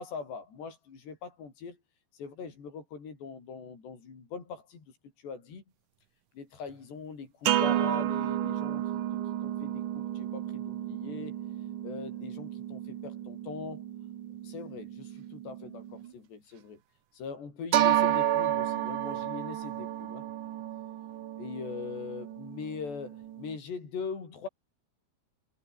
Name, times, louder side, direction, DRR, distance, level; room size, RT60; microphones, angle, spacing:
voice 1, 0.0-1.8 2.1-5.6 6.3-11.3 11.8-13.8 14.4-16.8 17.1-20.2 21.4-24.5, left 5 dB, 75° left, 8.1 m, -41 dB
sound 1, 7.5-16.1 17.7-23.6, right 12 dB, 65° right, 2.3 m, -32 dB
omnidirectional pair, 5.0 m